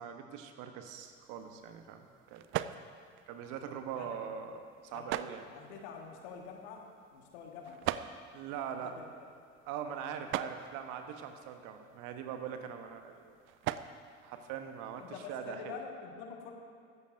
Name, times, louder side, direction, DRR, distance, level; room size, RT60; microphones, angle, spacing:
voice 1, 0.0-2.4 3.3-5.5 8.3-8.9 9.7-13.4 14.2-15.7, right 8 dB, 55° right, 6 dB, 1.2 m, -42 dB
sound 1, 0.9-15.2, right 13 dB, 35° right, 0.4 m, -44 dB
voice 2, 4.9-6.9 7.1-8.1 8.6-9.0 10.0-10.5 15.0-16.5, left 6 dB, 60° left, 2 dB, 1.8 m, -47 dB
16.5 x 14.0 x 2.7 m, 2.3 s
figure-of-eight pair, 65°, 37 cm